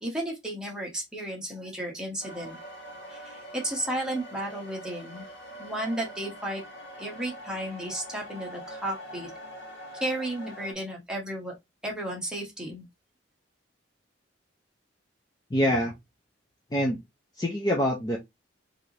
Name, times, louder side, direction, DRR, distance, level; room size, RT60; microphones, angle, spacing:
voice 1, 0.0-2.6 3.1-5.2 5.6-6.6 7.0-9.3 9.9-11.5 11.8-12.9, right 1 dB, 5° right, 1.0 m, -33 dB
sound 1, 2.2-10.7, equal, 60° left, 1.1 m, -44 dB
voice 2, 15.5-16.0 16.7-17.0 17.4-18.2, equal, 20° left, 0.5 m, -25 dB
3.3 x 2.6 x 2.7 m
head